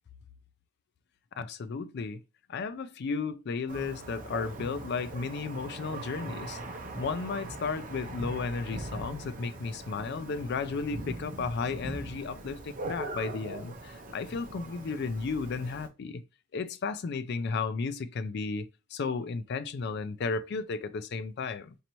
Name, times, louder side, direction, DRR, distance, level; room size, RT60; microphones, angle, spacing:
voice 1, 1.4-2.2 2.5-6.6 7.0-16.2 16.5-21.7, left 4 dB, 50° left, 0.4 m, -34 dB
Thunder, 3.7-15.9, right 2 dB, 40° right, 0.7 m, -41 dB
4.3 x 2.7 x 3.0 m
head